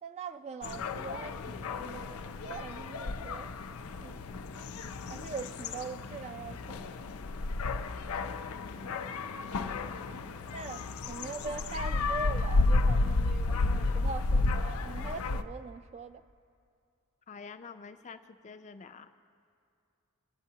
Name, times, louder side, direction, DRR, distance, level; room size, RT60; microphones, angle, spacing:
voice 1, 0.0-3.5 4.0-4.2 5.1-6.9 10.0-10.1 10.5-10.8 11.1-16.2, right 4 dB, 30° right, 0.3 m, -42 dB
sound 1, 0.6-15.4, left 3 dB, 85° left, 0.5 m, -32 dB
voice 2, 8.5-9.0 17.3-19.1, left 5 dB, 35° left, 0.5 m, -48 dB
24.0 x 8.8 x 2.8 m
head